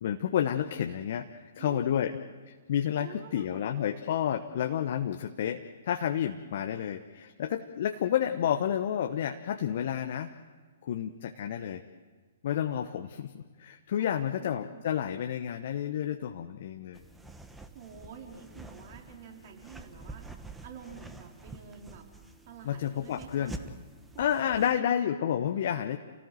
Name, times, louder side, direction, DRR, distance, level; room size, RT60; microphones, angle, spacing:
voice 1, 0.0-2.1 2.7-10.3 10.8-11.8 12.4-17.0 22.6-23.5 24.2-26.0, left 9 dB, 55° left, 6 dB, 1.1 m, -30 dB
voice 2, 1.6-2.2 2.9-3.9 14.0-15.0 17.7-22.1 22.5-23.5 24.1-25.0 25.5-26.0, right 7 dB, 45° right, 1 dB, 4.2 m, -48 dB
sound 1, 16.9-24.8, right 2 dB, 5° right, 1.4 m, -47 dB
29.0 x 18.0 x 7.7 m, 1.5 s
figure-of-eight pair, 120°, 0 cm